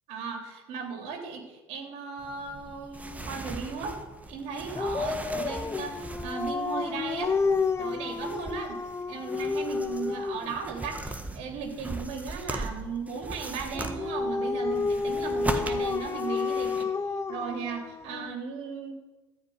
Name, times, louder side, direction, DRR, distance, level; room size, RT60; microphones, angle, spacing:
voice 1, 0.1-4.0 4.3-7.4 7.8-8.8 9.1-16.9 17.3-18.9, right 5 dB, 65° right, 3 dB, 3.3 m, -36 dB
sound 1, 2.2-16.8, right 2 dB, 10° right, 1.5 m, -39 dB
Dog, 4.7-10.6 13.7-18.3, left 4 dB, 20° left, 0.8 m, -30 dB
14.0 x 5.6 x 9.4 m, 1.1 s
hypercardioid pair, 70°, 12 cm